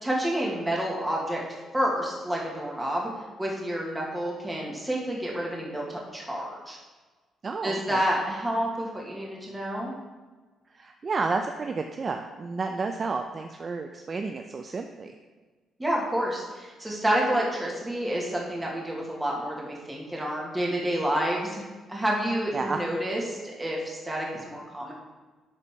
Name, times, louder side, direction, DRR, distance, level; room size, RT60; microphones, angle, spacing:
voice 1, 0.0-1.4 1.7-3.1 3.4-6.8 7.6-9.9 15.8-21.6 21.9-24.9, right 1 dB, 15° right, -3 dB, 2.1 m, -29 dB
voice 2, 7.4-8.0 10.7-15.2 22.5-22.8, right 4 dB, 40° right, 5 dB, 0.4 m, -31 dB
11.5 x 4.0 x 3.7 m, 1.3 s
cardioid pair, 90°, 0 cm